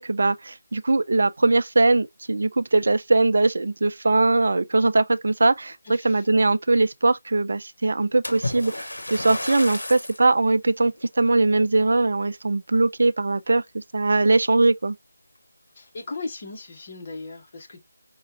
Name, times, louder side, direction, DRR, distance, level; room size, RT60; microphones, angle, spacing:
voice 1, 0.0-15.0, right 2 dB, 50° right, 0.4 m, -21 dB
voice 2, 5.9-6.3 15.7-17.8, left 3 dB, 30° left, 1.1 m, -37 dB
Splash splatter, 8.2-10.3 10.9-11.2 11.8-11.9, left 1 dB, 65° left, 0.9 m, -32 dB
5.2 x 2.4 x 2.6 m
figure-of-eight pair, 160°, 0 cm